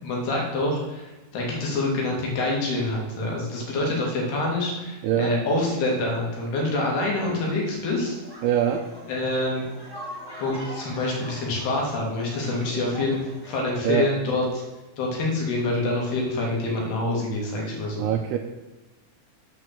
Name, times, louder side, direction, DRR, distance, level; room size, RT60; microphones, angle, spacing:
voice 1, 0.0-8.2 9.1-9.6 10.4-14.6 15.0-18.1, left 2 dB, 65° left, -1 dB, 4.0 m, -26 dB
voice 2, 5.0-5.4 8.4-8.9 13.8-14.2 18.0-18.4, right 9 dB, 85° right, 4 dB, 2.3 m, -23 dB
sound 1, 8.0-13.6, right 1 dB, 15° left, 0.8 m, -42 dB
8.1 x 6.4 x 7.4 m, 1.1 s
omnidirectional pair, 5.3 m